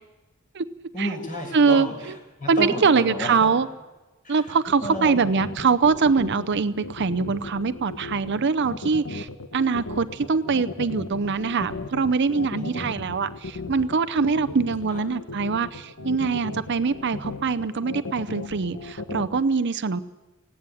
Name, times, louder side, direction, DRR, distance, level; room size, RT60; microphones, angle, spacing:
voice 1, 0.9-3.5 4.2-5.3 12.6-13.1 14.9-15.0, equal, 40° left, 2 dB, 6.4 m, -32 dB
voice 2, 1.5-1.9 2.5-3.7 4.3-20.0, right 5 dB, 55° right, 13 dB, 0.6 m, -23 dB
sound 1, 4.7-19.4, left 2 dB, 85° left, 1.5 m, -36 dB
17.5 x 16.0 x 9.8 m, 1.1 s
head